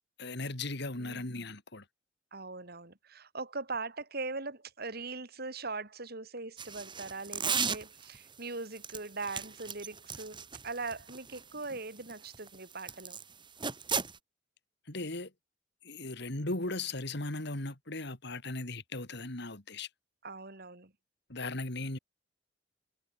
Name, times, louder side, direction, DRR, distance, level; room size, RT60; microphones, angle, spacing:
voice 1, 0.2-1.8 14.9-15.3 15.8-19.9 21.3-22.0, left 2 dB, 60° left, 3.1 m, -37 dB
voice 2, 2.3-13.2 20.2-20.9, right 3 dB, 55° right, 4.3 m, -41 dB
sound 1, 6.6-8.2 8.8-13.2 13.6-14.2, right 6 dB, 25° right, 3.9 m, -35 dB
head